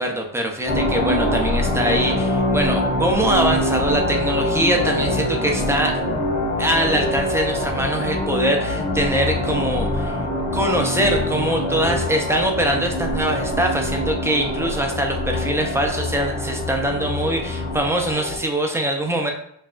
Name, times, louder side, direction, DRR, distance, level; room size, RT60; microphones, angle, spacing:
voice 1, 0.0-6.0 6.6-10.2 10.5-19.3, right 1 dB, 5° right, 2 dB, 0.5 m, -23 dB
sound 1, 0.7-18.4, left 1 dB, 70° left, 1.2 m, -24 dB
5.4 x 2.3 x 2.5 m, 0.70 s
wide cardioid pair, 90°, 49 cm